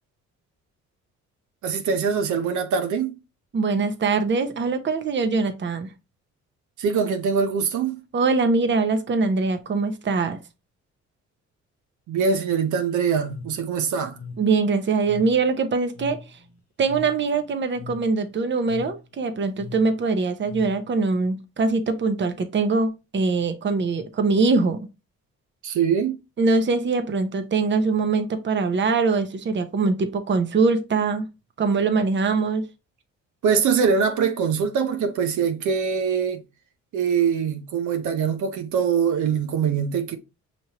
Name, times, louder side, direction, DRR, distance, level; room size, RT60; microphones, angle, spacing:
voice 1, 1.6-3.2 6.8-8.0 12.1-14.2 25.6-26.2 33.4-36.4 36.9-40.2, right 6 dB, 75° right, 0.7 m, -23 dB
voice 2, 3.5-5.9 8.1-10.4 14.4-16.2 16.8-24.9 26.4-31.3 31.6-32.6, right 4 dB, 40° right, 0.8 m, -22 dB
sound 1, 13.2-21.1, left 4 dB, 55° left, 1.0 m, -41 dB
5.2 x 3.0 x 2.9 m
cardioid pair, 90°, 30 cm